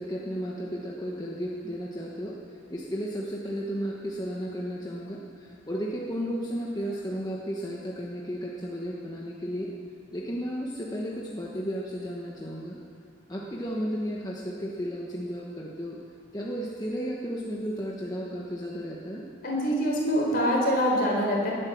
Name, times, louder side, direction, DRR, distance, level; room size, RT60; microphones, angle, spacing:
voice 1, 0.0-2.4 2.7-9.7 10.1-12.8 13.3-16.0 16.3-19.2, equal, 20° left, -3 dB, 1.2 m, -33 dB
voice 2, 19.4-21.5, equal, 50° left, -2 dB, 4.1 m, -24 dB
19.0 x 9.3 x 7.2 m, 2.3 s
head